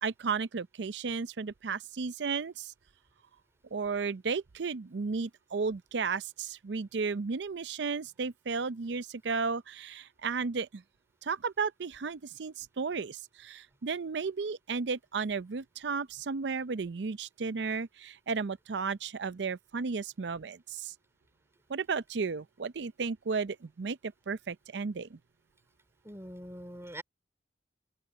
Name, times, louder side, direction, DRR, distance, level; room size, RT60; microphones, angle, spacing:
voice 1, 0.0-2.7 3.7-10.8 11.2-20.9 21.7-25.2, right 5 dB, 70° right, 0.5 m, -34 dB
voice 2, 26.0-27.0, right 1 dB, 15° right, 3.0 m, -43 dB
open air
head